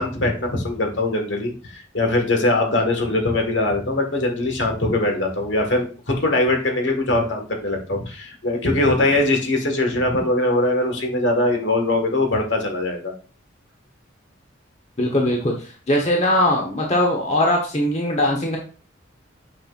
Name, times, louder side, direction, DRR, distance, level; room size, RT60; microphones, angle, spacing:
voice 1, 0.0-13.1, left 2 dB, 65° left, 3 dB, 1.7 m, -21 dB
voice 2, 15.0-18.6, left 1 dB, 35° left, 1 dB, 1.1 m, -20 dB
8.8 x 5.7 x 2.5 m, 0.37 s
head